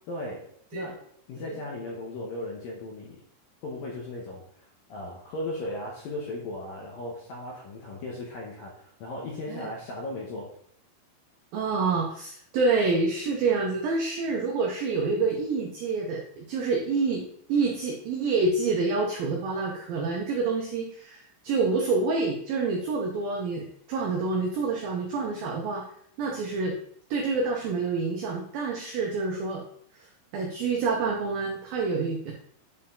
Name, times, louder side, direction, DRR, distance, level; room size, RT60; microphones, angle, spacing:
voice 1, 0.1-3.2 3.6-10.5, left 1 dB, 70° left, -2 dB, 2.2 m, -37 dB
voice 2, 11.5-17.2 17.5-25.8 26.2-26.7 27.1-29.6 30.0-32.3, right 4 dB, 80° right, 0 dB, 2.1 m, -27 dB
9.7 x 4.6 x 3.7 m, 0.64 s
omnidirectional pair, 5.4 m